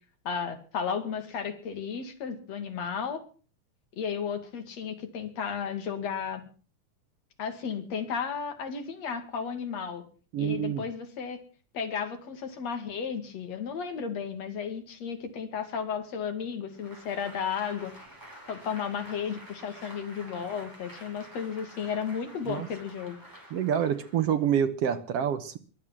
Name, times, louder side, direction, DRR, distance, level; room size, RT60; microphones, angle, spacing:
voice 1, 0.2-3.2 4.0-6.5 7.4-10.0 10.4-11.4 11.7-17.9 18.5-23.2, left 6 dB, 60° left, 7 dB, 3.3 m, -34 dB
voice 2, 10.3-10.8 22.5-22.7 23.5-25.6, right 9 dB, 65° right, 11 dB, 1.8 m, -27 dB
Applause, 16.7-24.4, right 1 dB, 5° right, 5.4 m, -49 dB
22.5 x 8.5 x 7.4 m, 0.40 s
omnidirectional pair, 3.5 m